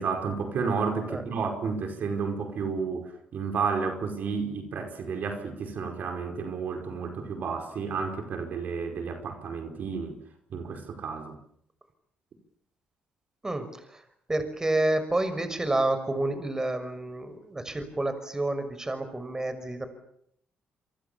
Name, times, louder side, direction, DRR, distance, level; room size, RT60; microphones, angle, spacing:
voice 1, 0.0-10.2 10.5-11.4, right 5 dB, 65° right, 5.2 m, -31 dB
voice 2, 13.4-14.0 14.3-19.9, right 2 dB, 20° right, 6.1 m, -29 dB
28.0 x 25.5 x 7.2 m
cardioid pair, 80°, 3 cm